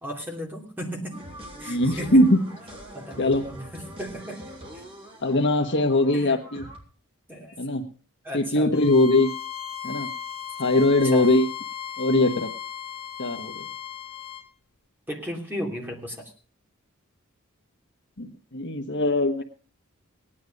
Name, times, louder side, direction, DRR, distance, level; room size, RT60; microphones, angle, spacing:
voice 1, 0.0-1.1 1.6-2.2 2.9-4.8 6.1-6.4 7.3-7.6 8.2-8.7 11.1-11.3 15.1-16.3, equal, 10° right, 0 dB, 3.0 m, -35 dB
sound 1, 1.1-6.8, equal, 25° right, 3.9 m, -43 dB
voice 2, 1.7-2.4 3.2-3.4 5.2-6.7 7.6-7.9 8.3-9.3 9.8-10.1 10.6-11.5 12.0-12.5 13.2-13.7 18.2-19.4, left 1 dB, 55° left, 5 dB, 1.3 m, -21 dB
Bowed string instrument, 8.7-14.5, left 9 dB, 80° left, 1.5 m, -36 dB
17.5 x 10.5 x 5.2 m, 0.40 s
head